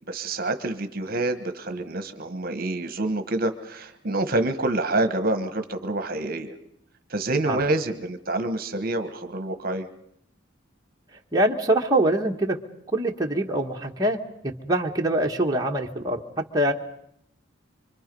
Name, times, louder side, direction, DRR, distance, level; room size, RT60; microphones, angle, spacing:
voice 1, 0.1-6.5 7.1-9.9, right 2 dB, 50° right, 9 dB, 1.3 m, -27 dB
voice 2, 11.3-12.6 12.9-14.2 14.4-16.7, right 1 dB, 20° right, 0 dB, 1.4 m, -24 dB
26.0 x 24.5 x 5.4 m, 0.71 s
head